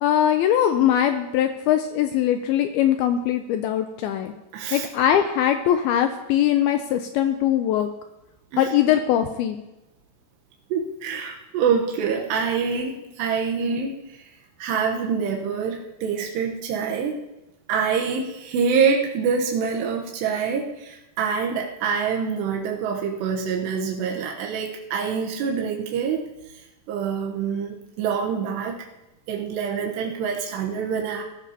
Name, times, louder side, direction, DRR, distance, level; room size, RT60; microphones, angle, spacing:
voice 1, 0.0-4.3 4.7-7.9 8.6-9.6 13.7-13.8, left 10 dB, 80° left, 7 dB, 2.3 m, -21 dB
voice 2, 4.5-4.9 8.5-8.7 10.7-14.0 14.6-17.2 17.7-26.2 26.9-28.8 29.3-31.2, right 6 dB, 85° right, 0 dB, 3.2 m, -25 dB
20.0 x 13.0 x 2.8 m, 0.97 s
omnidirectional pair, 4.8 m